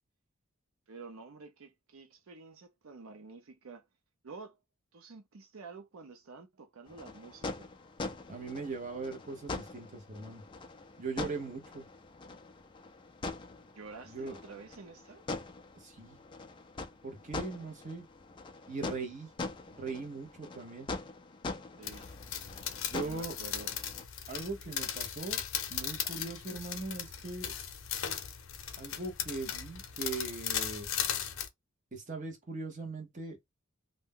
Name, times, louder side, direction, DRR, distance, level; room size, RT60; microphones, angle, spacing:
voice 1, 0.9-3.9 4.2-4.6 4.9-7.7 13.7-15.2 21.8-22.1 23.0-23.7, right 4 dB, 90° right, 0.6 m, -49 dB
sound 1, 6.9-24.0, left 3 dB, 25° left, 0.3 m, -43 dB
voice 2, 8.3-10.4 11.0-11.8 14.1-14.4 15.7-16.2 17.0-18.1 18.7-19.3 19.7-20.9 22.9-23.4 24.3-25.4 25.7-27.5 28.8-30.9 31.9-33.4, right 3 dB, 40° right, 0.9 m, -40 dB
sound 2, 21.8-31.5, left 9 dB, 80° left, 0.6 m, -37 dB
2.6 x 2.1 x 3.6 m
head